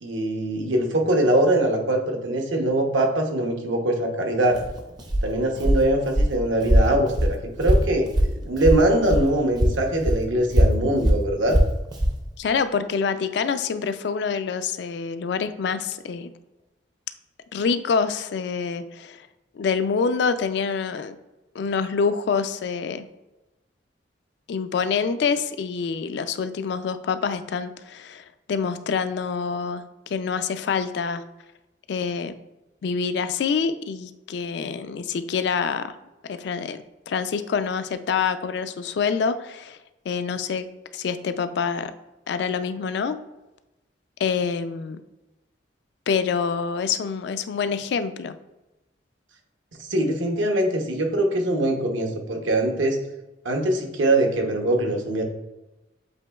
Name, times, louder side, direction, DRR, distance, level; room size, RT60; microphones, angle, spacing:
voice 1, 0.0-4.6 5.2-8.1 8.4-11.6 49.8-53.0 53.4-55.2, right 1 dB, 80° right, 3 dB, 0.8 m, -22 dB
Walk footsteps, 4.5-9.3 9.6-12.2, equal, 20° right, 0.5 m, -21 dB
voice 2, 12.4-16.3 17.5-19.3 19.5-21.2 21.5-23.1 24.5-31.2 31.9-32.3 32.8-35.9 36.3-39.8 40.1-40.7 40.9-41.9 42.3-43.2 44.2-45.0 46.1-48.4, left 5 dB, 60° left, 11 dB, 0.3 m, -26 dB
7.8 x 3.0 x 2.3 m, 1.0 s
head